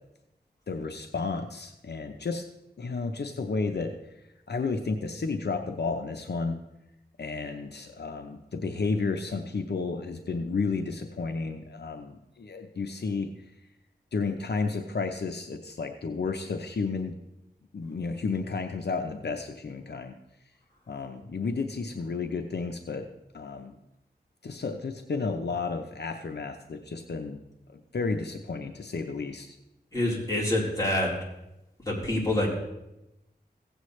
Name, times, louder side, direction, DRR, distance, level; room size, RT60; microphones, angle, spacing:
voice 1, 0.7-2.4 2.8-3.9 4.5-6.6 7.2-13.3 14.1-17.1 17.7-20.1 20.9-23.0 23.3-23.8 24.4-27.4 27.7-29.6, left 4 dB, 75° left, 5 dB, 0.7 m, -32 dB
voice 2, 29.9-31.1 31.9-32.5, left 1 dB, 20° left, -5 dB, 3.7 m, -26 dB
16.5 x 8.2 x 3.2 m, 0.91 s
wide cardioid pair, 55°, 17 cm